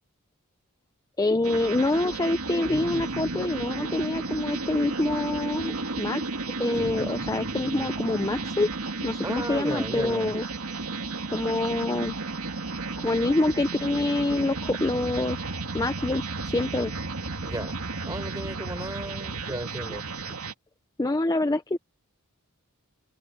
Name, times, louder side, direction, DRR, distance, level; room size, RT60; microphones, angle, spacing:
voice 1, 1.2-8.7 9.0-10.5 11.3-12.1 13.0-16.9 21.0-21.8, left 2 dB, 15° left, 0.5 m, -26 dB
sound 1, 1.4-20.5, right 3 dB, 75° right, 2.5 m, -33 dB
sound 2, 2.7-6.3 6.7-10.1, equal, 55° right, 6.4 m, -43 dB
voice 2, 9.2-10.3 17.4-17.8 18.0-20.0, right 1 dB, 15° right, 6.2 m, -35 dB
head